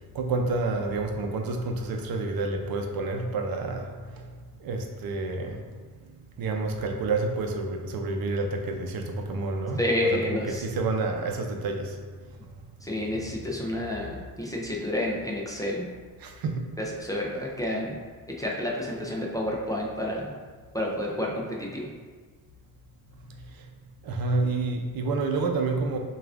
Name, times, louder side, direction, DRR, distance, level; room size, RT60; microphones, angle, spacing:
voice 1, 0.1-4.3 4.6-5.7 6.1-12.4 16.2-16.7 23.5-23.7 24.0-26.0, right 3 dB, 70° right, 3 dB, 0.6 m, -29 dB
voice 2, 9.8-10.6 12.8-15.9 16.8-18.0 18.3-20.3 20.7-21.9, left 1 dB, 10° left, -3 dB, 0.4 m, -30 dB
6.4 x 2.4 x 2.4 m, 1.5 s
cardioid pair, 120°, 37 cm